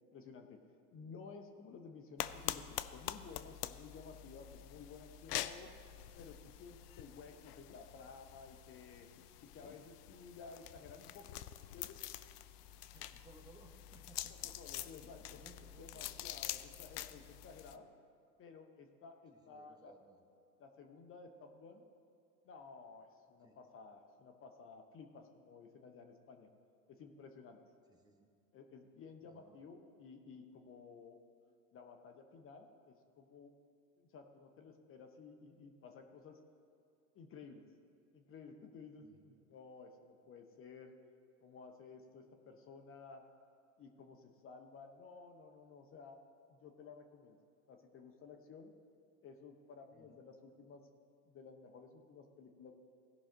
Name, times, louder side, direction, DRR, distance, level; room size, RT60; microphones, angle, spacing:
voice 1, 0.1-0.6 0.9-5.7 6.1-9.1 9.5-12.0 14.4-15.4 15.8-17.9 18.4-19.9 20.6-21.8 22.4-26.5 26.9-27.6 28.5-31.2 31.7-33.5 34.0-36.4 37.1-37.6 38.1-40.9 41.4-43.2 43.8-46.2 46.5-47.4 47.7-48.7 49.2-50.8 51.3-52.7, left 5 dB, 25° left, 5 dB, 0.8 m, -54 dB
sound 1, 2.2-17.8, left 13 dB, 70° left, 0.6 m, -46 dB
voice 2, 12.8-14.5 15.0-16.2 17.7-17.9 19.3-20.5 23.4-23.6 27.9-28.3 29.2-29.6 39.0-39.4 49.9-50.2, right 2 dB, 10° right, 1 dB, 1.2 m, -63 dB
17.0 x 5.7 x 3.8 m, 2.4 s
hypercardioid pair, 100°, 49 cm